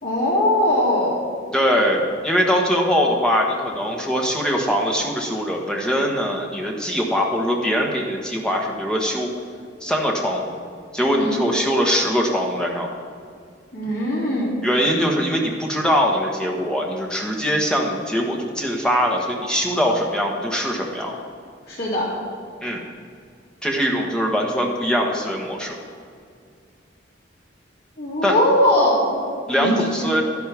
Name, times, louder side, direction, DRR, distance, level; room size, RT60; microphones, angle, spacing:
voice 1, 0.0-1.1 11.1-11.4 13.7-14.6 21.7-22.1 28.0-29.2 29.6-29.8, left 1 dB, 55° left, -6 dB, 2.9 m, -20 dB
voice 2, 1.5-9.3 9.8-10.6 10.9-12.9 14.6-21.2 22.6-22.8 23.6-25.8 28.2-28.4 29.5-30.2, equal, 5° left, -1 dB, 1.3 m, -22 dB
11.5 x 10.5 x 3.5 m, 2.3 s
head